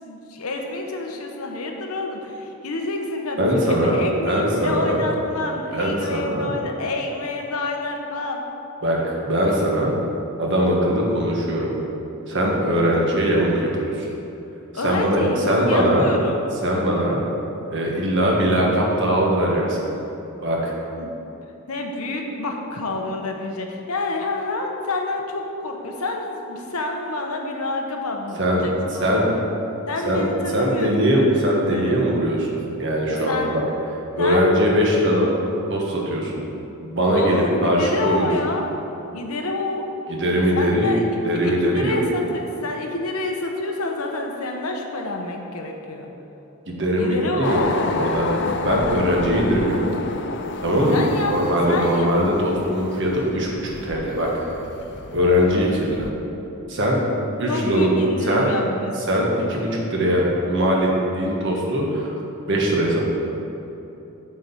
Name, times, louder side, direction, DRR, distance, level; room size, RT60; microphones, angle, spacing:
voice 1, 0.0-8.4 14.7-16.4 20.9-21.1 21.7-29.3 29.9-31.3 31.7-32.0 33.3-33.5 34.2-34.6 37.1-38.7 39.1-39.8 40.6-46.1 47.0-47.8 50.9-51.3 51.7-52.1 57.5-59.3, left 2 dB, 90° left, 2 dB, 1.0 m, -28 dB
voice 2, 3.4-5.0 5.7-6.5 8.8-9.0 9.2-10.0 10.4-11.7 12.3-14.1 14.8-16.1 16.6-17.2 17.7-19.8 20.4-20.7 28.4-28.6 29.0-29.3 30.1-30.3 30.5-33.6 34.2-35.3 35.7-36.3 36.8-38.3 40.1-40.9 41.2-42.0 46.7-47.6 47.9-48.3 48.6-49.8 50.6-51.0 51.3-54.3 55.1-56.1 56.7-57.0 57.4-57.9 58.2-58.5 59.1-60.9 61.1-62.0 62.5-63.1, equal, 55° right, -2 dB, 1.5 m, -21 dB
sound 1, 47.4-56.1, left 3 dB, 55° left, 0.5 m, -31 dB
7.6 x 4.5 x 7.0 m, 3.0 s
head